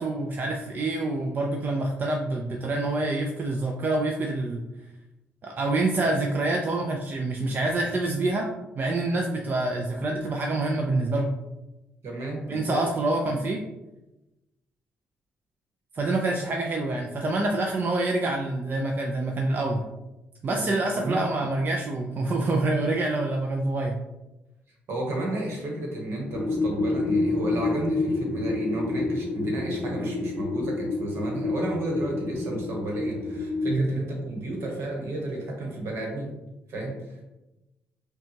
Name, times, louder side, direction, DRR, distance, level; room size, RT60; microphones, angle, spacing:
voice 1, 0.0-4.6 5.4-8.5 8.8-11.3 12.5-13.6 15.9-19.8 20.4-24.0 33.7-33.9, right 2 dB, 45° right, 1 dB, 0.5 m, -26 dB
voice 2, 12.0-12.8 13.2-13.4 20.4-21.2 24.9-36.3 36.7-37.0, right 1 dB, 70° right, 0 dB, 1.2 m, -32 dB
sound 1, 26.3-33.8, left 2 dB, 30° left, 0.6 m, -28 dB
5.4 x 2.4 x 2.9 m, 1.0 s
supercardioid pair, 65°, 4 cm